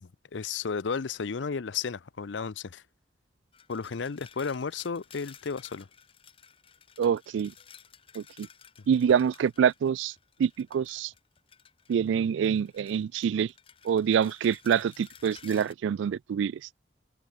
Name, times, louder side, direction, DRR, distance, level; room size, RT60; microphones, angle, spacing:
voice 1, 0.0-2.8 3.7-5.9 9.1-9.2, left 5 dB, 85° left, 0.6 m, -33 dB
sound 1, 3.5-12.1 12.4-15.7, left 8 dB, 30° left, 1.2 m, -54 dB
voice 2, 7.0-7.5 8.2-8.5 8.9-10.1 10.4-11.1 11.9-13.5 13.8-16.6, right 8 dB, 90° right, 0.3 m, -26 dB
head